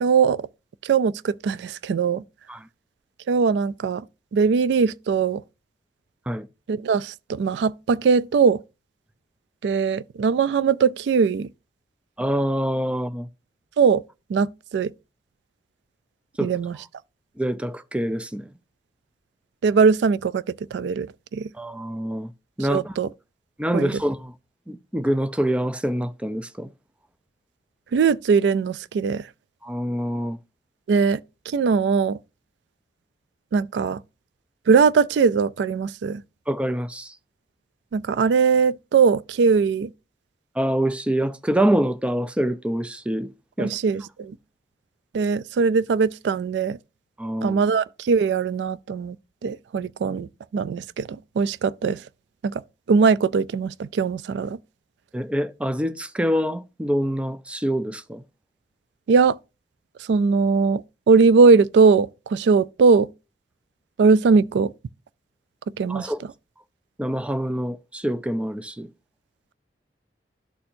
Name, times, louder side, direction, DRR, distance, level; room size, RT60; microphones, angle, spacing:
voice 1, 0.0-0.5 0.8-2.2 3.3-4.0 4.3-5.4 6.7-8.6 9.6-11.5 13.8-14.0 14.3-14.9 16.4-16.8 19.6-20.4 20.7-21.5 22.7-23.1 23.7-23.9 27.9-29.3 30.9-31.2 31.5-32.2 33.5-34.0 34.7-36.2 37.9-39.9 43.6-44.4 45.1-46.8 47.4-49.2 49.4-52.0 52.4-52.6 52.9-54.6 59.1-59.4 60.1-63.1 64.0-64.7 65.8-66.1, right 5 dB, 80° right, 0.3 m, -20 dB
voice 2, 12.2-13.3 16.4-16.5 17.4-18.5 21.5-22.3 22.6-22.9 23.6-24.3 24.7-26.7 29.6-30.4 36.5-37.2 40.6-43.3 43.6-43.8 47.2-47.6 55.1-58.2 65.9-66.2 67.0-68.9, equal, 5° right, 0.4 m, -25 dB
12.5 x 4.3 x 2.6 m
head